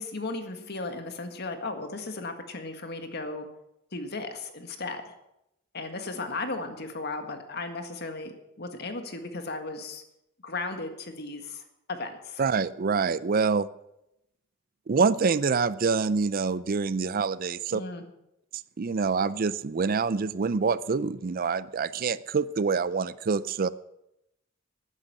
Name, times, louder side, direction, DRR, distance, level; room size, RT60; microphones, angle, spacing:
voice 1, 0.0-3.5 3.9-5.1 5.7-10.0 10.4-12.4 17.7-18.0, left 3 dB, 55° left, 6 dB, 1.8 m, -36 dB
voice 2, 12.4-13.7 14.9-17.8 18.8-23.7, right 5 dB, 45° right, 17 dB, 0.4 m, -26 dB
12.0 x 10.0 x 7.6 m, 0.85 s
head